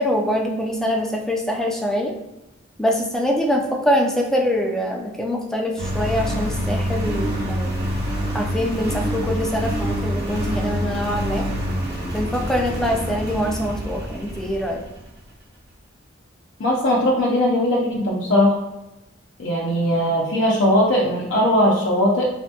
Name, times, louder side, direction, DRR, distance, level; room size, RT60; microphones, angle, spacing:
voice 1, 0.0-2.1 2.8-7.8 8.3-11.5 12.1-14.9, equal, 5° left, 0 dB, 0.4 m, -24 dB
Engine, 5.8-15.2, equal, 60° right, 0.8 m, -26 dB
voice 2, 16.6-18.6 19.4-22.3, left 1 dB, 70° left, -3 dB, 0.5 m, -19 dB
3.3 x 2.2 x 2.7 m, 0.98 s
head